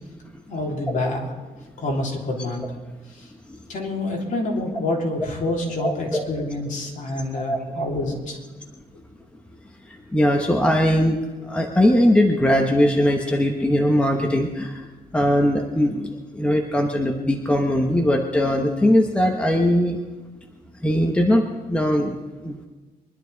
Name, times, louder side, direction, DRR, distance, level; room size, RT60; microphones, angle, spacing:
voice 1, 0.5-1.3 1.8-2.7 3.7-8.4, left 2 dB, 55° left, -1 dB, 3.2 m, -27 dB
voice 2, 5.8-6.2 7.3-7.8 9.8-14.9 15.1-20.0 20.8-22.6, equal, 5° left, 1 dB, 1.1 m, -20 dB
23.5 x 12.0 x 4.0 m, 1.3 s
wide cardioid pair, 165°, 16 cm